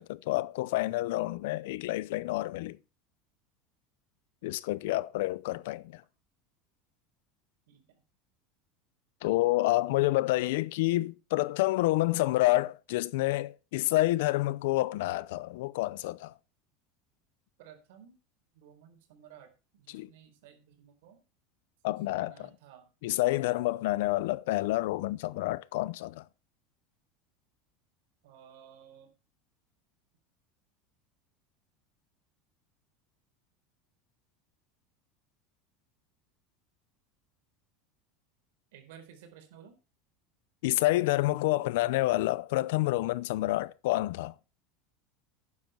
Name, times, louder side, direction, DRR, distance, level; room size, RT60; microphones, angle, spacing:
voice 1, 0.0-2.8 4.4-6.0 9.2-16.3 19.9-20.1 21.8-22.5 23.0-26.2 40.6-44.3, left 18 dB, 70° left, 0.6 m, -28 dB
voice 2, 4.4-4.9 7.7-8.0 17.6-18.2 18.5-21.2 22.2-22.9 28.2-29.1 38.7-39.8, right 9 dB, 70° right, 4.4 m, -55 dB
12.5 x 9.6 x 4.5 m
supercardioid pair, 180°, 0 cm